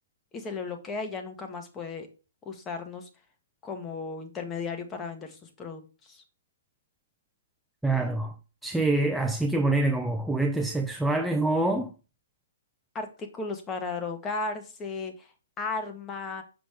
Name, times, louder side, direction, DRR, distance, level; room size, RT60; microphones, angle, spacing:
voice 1, 0.3-2.1 2.4-3.1 3.6-6.2 12.9-16.4, left 4 dB, 15° left, 1.2 m, -35 dB
voice 2, 7.8-8.4 8.6-11.9, right 2 dB, ahead, 0.4 m, -25 dB
6.2 x 5.1 x 3.5 m
hypercardioid pair, 140°, 0 cm